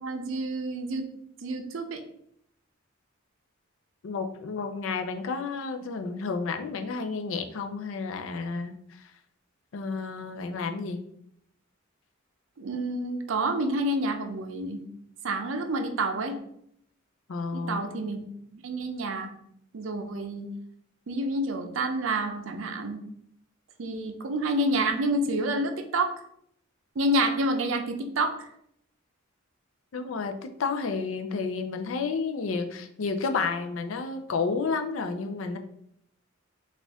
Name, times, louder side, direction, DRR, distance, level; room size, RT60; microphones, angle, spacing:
voice 1, 0.0-1.0 1.4-2.0 12.6-14.8 15.2-16.4 17.5-18.2 18.5-19.3 19.7-20.5 21.1-23.0 23.8-26.1 27.0-28.5, right 1 dB, 70° right, 5 dB, 0.5 m, -28 dB
voice 2, 4.0-8.8 9.7-11.0 17.3-17.8 29.9-35.6, left 4 dB, 75° left, 6 dB, 0.4 m, -31 dB
4.2 x 2.4 x 3.5 m, 0.72 s
head